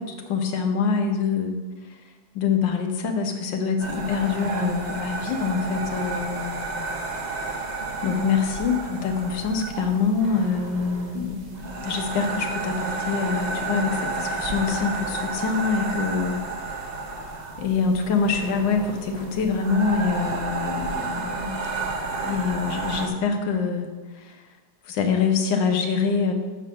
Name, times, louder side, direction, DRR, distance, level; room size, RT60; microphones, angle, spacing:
voice 1, 0.0-1.6 1.8-2.0 2.3-6.9 7.2-7.7 8.0-16.4 17.6-23.9 24.1-24.4 24.8-26.3, left 5 dB, 70° left, 4 dB, 1.6 m, -25 dB
sound 1, 3.8-23.1, right 3 dB, 90° right, 0.3 m, -31 dB
6.7 x 5.7 x 6.3 m, 1.3 s
omnidirectional pair, 2.1 m